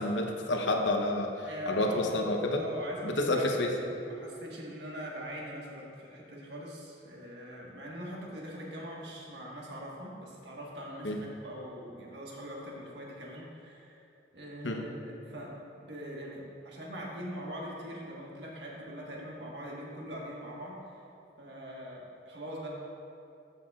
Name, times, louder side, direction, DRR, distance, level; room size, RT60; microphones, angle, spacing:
voice 1, 0.0-2.6 3.0-3.7 11.0-11.2 14.6-14.8, left 1 dB, 80° left, 2 dB, 0.8 m, -29 dB
voice 2, 1.5-2.1 2.6-3.6 4.0-14.1 14.3-21.0 21.4-22.7, equal, 70° right, -3 dB, 1.5 m, -42 dB
13.5 x 6.6 x 2.4 m, 2.6 s
head